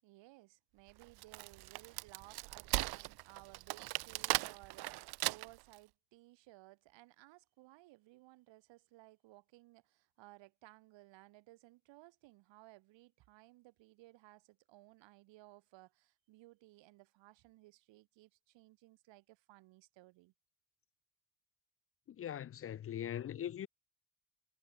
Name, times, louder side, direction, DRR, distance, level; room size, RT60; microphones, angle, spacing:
voice 1, 0.0-20.3, right 19 dB, 90° right, 7.6 m, -60 dB
Wood, 1.0-5.7, right 22 dB, 60° right, 0.5 m, -38 dB
voice 2, 22.1-23.7, left 10 dB, 30° left, 0.8 m, -41 dB
cardioid pair, 180°, 43 cm